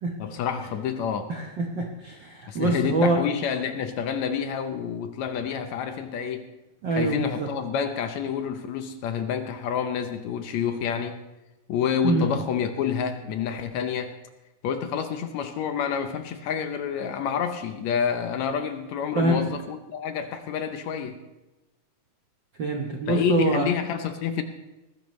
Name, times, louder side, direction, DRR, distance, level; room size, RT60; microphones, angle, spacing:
voice 1, 0.2-1.3 2.5-6.5 6.9-11.2 11.7-14.1 14.6-21.2 23.1-24.4, left 7 dB, 70° left, 7 dB, 1.9 m, -28 dB
voice 2, 1.3-3.2 6.8-7.5 12.0-12.3 19.1-19.5 22.6-23.7, right 2 dB, 65° right, 2 dB, 1.1 m, -25 dB
19.0 x 15.0 x 3.1 m, 1.0 s
omnidirectional pair, 3.7 m